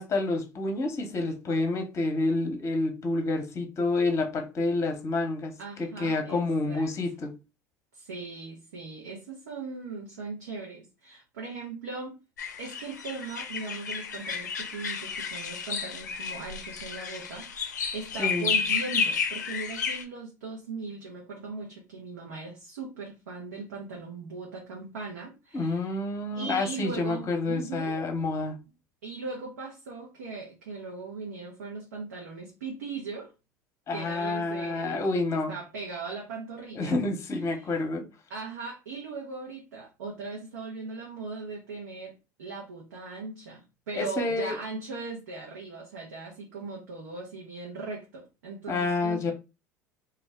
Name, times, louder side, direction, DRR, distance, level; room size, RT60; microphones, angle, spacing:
voice 1, 0.0-7.3 18.2-18.5 25.5-28.6 33.9-35.5 36.7-38.1 44.0-44.5 48.7-49.3, left 2 dB, 30° left, 0.7 m, -28 dB
voice 2, 5.6-6.9 7.9-12.2 12.6-17.5 17.7-25.9 26.3-28.0 29.0-33.3 33.9-35.2 35.5-36.9 37.5-37.7 38.3-49.3, right 4 dB, 75° right, 0.7 m, -39 dB
sound 1, 12.4-20.0, left 6 dB, 85° left, 0.4 m, -32 dB
2.3 x 2.0 x 3.3 m
hypercardioid pair, 70°, 9 cm